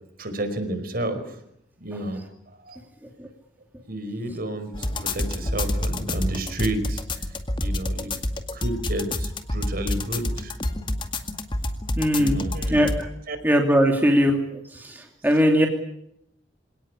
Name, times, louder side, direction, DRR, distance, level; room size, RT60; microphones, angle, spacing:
voice 1, 0.2-1.4 1.8-2.2 2.6-2.8 3.9-7.0 7.6-8.1 8.5-10.5 12.2-12.9 13.3-13.4, right 1 dB, 50° right, 8 dB, 5.1 m, -31 dB
sound 1, 4.7-13.0, left 1 dB, 25° left, 2.1 m, -28 dB
voice 2, 12.0-12.4 12.7-13.0 13.4-14.4 15.2-15.7, equal, 10° right, 2 dB, 2.8 m, -18 dB
27.0 x 18.5 x 9.9 m, 0.77 s
head